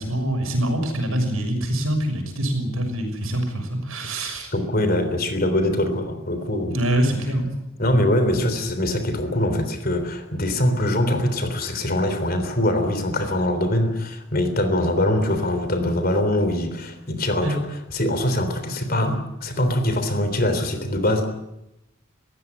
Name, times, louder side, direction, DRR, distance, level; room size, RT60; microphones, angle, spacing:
voice 1, 0.0-4.5 6.7-7.5 17.4-17.5, right 1 dB, 80° right, 5 dB, 6.3 m, -24 dB
voice 2, 4.5-6.8 7.8-21.3, left 1 dB, 45° left, 9 dB, 3.5 m, -23 dB
20.5 x 16.5 x 9.8 m, 0.91 s
head